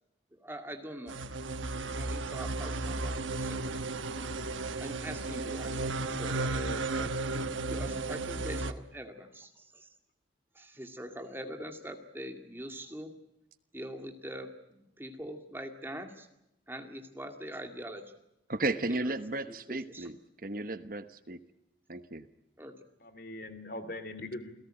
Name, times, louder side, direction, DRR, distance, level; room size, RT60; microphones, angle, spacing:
voice 1, 0.3-3.8 4.8-9.9 10.5-13.1 13.7-16.3 16.7-18.2 18.9-20.2 22.6-22.9, equal, 10° right, 5 dB, 2.1 m, -44 dB
sound 1, 1.1-8.7, right 3 dB, 85° right, 1.2 m, -34 dB
voice 2, 6.4-6.9 23.0-24.5, left 1 dB, 50° left, 11 dB, 2.7 m, -41 dB
voice 3, 18.5-20.2 20.4-21.4 21.9-22.3, right 2 dB, 45° right, 11 dB, 1.1 m, -34 dB
28.5 x 17.5 x 8.9 m, 0.86 s
head